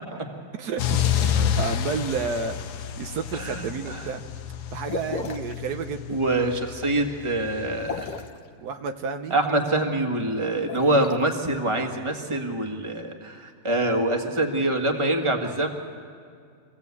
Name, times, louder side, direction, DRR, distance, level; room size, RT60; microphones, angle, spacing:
voice 1, 0.5-4.2 4.7-6.2 8.6-9.4 10.9-11.0, right 5 dB, 75° right, 7 dB, 1.4 m, -31 dB
sound 1, 0.8-8.3, left 9 dB, 85° left, 1.4 m, -29 dB
voice 2, 3.4-4.1 6.1-8.1 9.3-15.7, right 1 dB, 20° right, 3 dB, 1.6 m, -25 dB
sound 2, 4.9-5.6 7.8-8.4 10.5-11.2, left 5 dB, 55° left, 1.3 m, -34 dB
25.5 x 16.5 x 8.4 m, 2.3 s
omnidirectional pair, 1.7 m